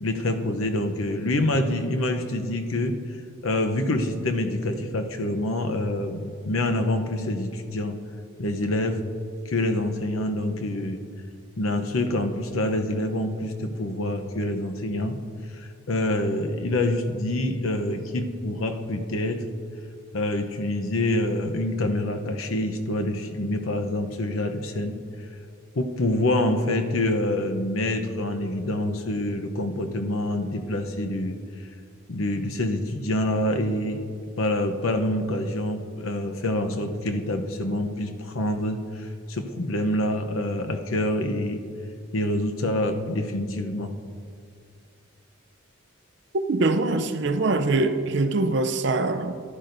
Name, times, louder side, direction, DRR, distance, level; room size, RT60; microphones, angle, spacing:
voice 1, 0.0-3.0 3.4-8.0 8.4-9.0 9.5-11.0 11.6-15.2 15.6-19.5 20.1-25.0 25.7-31.4 32.1-34.0 34.4-41.6 42.1-44.0, left 1 dB, 80° left, 0.8 m, -26 dB
voice 2, 46.5-49.3, right 2 dB, 55° right, 0.5 m, -23 dB
14.5 x 11.5 x 2.6 m
head